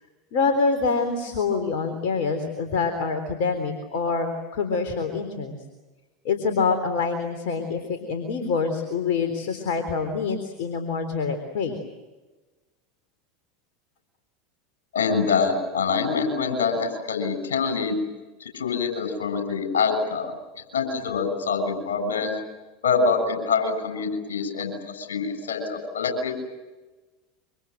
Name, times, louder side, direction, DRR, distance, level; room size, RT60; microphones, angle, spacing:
voice 1, 0.3-5.6 6.2-11.8, left 4 dB, 55° left, 6 dB, 3.8 m, -26 dB
voice 2, 14.9-18.0 18.4-20.3 20.7-22.3 22.8-26.5, left 5 dB, 75° left, 7 dB, 7.2 m, -25 dB
27.0 x 25.5 x 7.9 m, 1.2 s
figure-of-eight pair, 80°, 0 cm